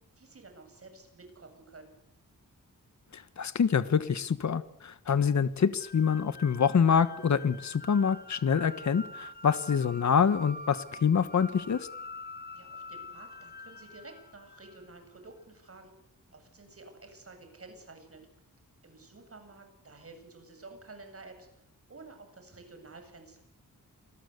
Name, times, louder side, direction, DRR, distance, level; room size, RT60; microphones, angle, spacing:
voice 1, 0.2-1.9 12.5-15.9 16.3-18.2 18.8-23.4, right 3 dB, 40° right, 6 dB, 8.0 m, -51 dB
voice 2, 3.1-11.9, left 6 dB, 55° left, 14 dB, 1.5 m, -26 dB
sound 1, 5.8-15.0, left 1 dB, 30° left, 2.0 m, -45 dB
29.0 x 20.5 x 8.3 m, 0.74 s
wide cardioid pair, 105°, 34 cm